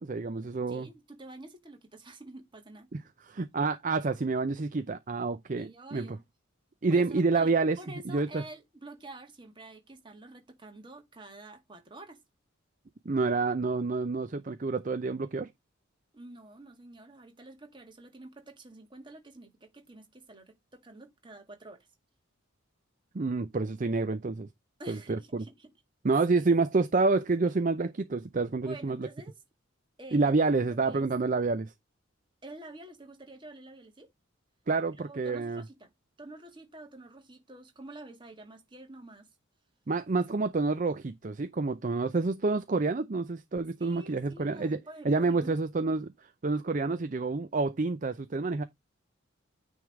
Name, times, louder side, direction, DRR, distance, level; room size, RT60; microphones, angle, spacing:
voice 1, 0.0-0.9 2.9-3.0 3.3-6.2 6.8-7.8 8.1-8.4 13.1-15.5 23.1-24.5 24.9-25.4 26.0-29.1 30.1-31.7 34.7-35.6 39.9-44.8 45.0-46.1 46.4-48.6, right 3 dB, 40° right, 0.5 m, -28 dB
voice 2, 0.7-2.9 5.6-6.2 6.9-7.5 7.8-12.2 16.1-21.9 24.8-25.7 28.6-29.4 30.0-30.3 30.7-31.1 32.4-34.1 35.0-35.9 36.2-39.3 43.8-45.6, right 2 dB, 25° right, 1.8 m, -48 dB
9.4 x 3.5 x 4.8 m
head